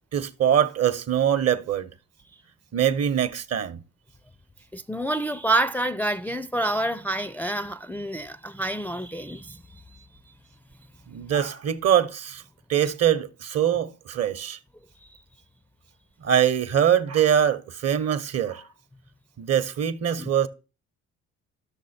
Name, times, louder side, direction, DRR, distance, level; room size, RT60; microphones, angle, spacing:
voice 1, 0.1-1.9 2.7-3.8 11.1-12.4 12.7-14.6 16.2-18.7 19.4-20.5, right 9 dB, 50° right, 1.0 m, -23 dB
voice 2, 4.7-10.0 20.2-20.3, right 1 dB, 5° left, 0.4 m, -28 dB
12.0 x 6.3 x 4.3 m
supercardioid pair, 70°, 33 cm